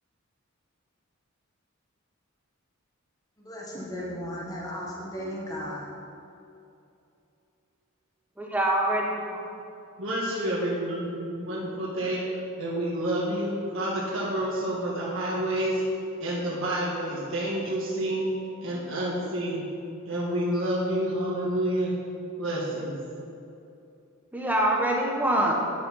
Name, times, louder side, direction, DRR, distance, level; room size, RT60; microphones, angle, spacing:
voice 1, 3.4-5.9, equal, 15° left, -5 dB, 1.5 m, -35 dB
voice 2, 8.4-9.4 24.3-25.5, right 1 dB, 10° right, -2 dB, 1.1 m, -25 dB
voice 3, 10.0-12.2 12.6-15.8 16.2-18.3 18.6-19.6 20.1-21.9 22.4-23.0, right 1 dB, 65° right, -6 dB, 1.6 m, -29 dB
9.7 x 6.0 x 5.6 m, 2.7 s
head